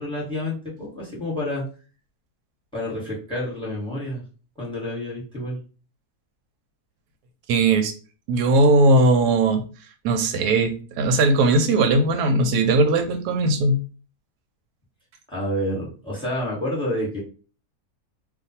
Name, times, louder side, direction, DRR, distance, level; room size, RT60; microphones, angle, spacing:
voice 1, 0.0-1.6 2.7-4.2 4.6-5.6 15.3-17.2, left 1 dB, 5° left, -3 dB, 1.2 m, -29 dB
voice 2, 7.5-7.9 8.3-9.6 10.0-13.8, right 2 dB, 85° right, 5 dB, 1.1 m, -19 dB
2.5 x 2.4 x 4.1 m, 0.37 s
omnidirectional pair, 1.6 m